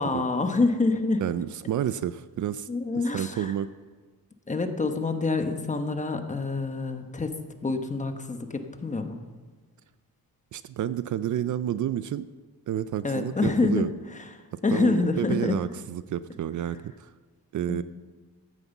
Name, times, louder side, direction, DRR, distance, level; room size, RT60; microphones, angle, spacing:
voice 1, 0.0-1.2 2.7-3.5 4.5-7.4 7.6-9.2 13.0-13.8 14.6-15.6 17.7-17.8, left 3 dB, 20° left, 7 dB, 1.0 m, -26 dB
voice 2, 1.2-3.7 10.5-12.3 12.7-13.9 14.5-17.1 17.5-17.8, right 10 dB, 55° right, 15 dB, 0.4 m, -30 dB
14.5 x 9.2 x 7.1 m, 1.4 s
wide cardioid pair, 155°, 36 cm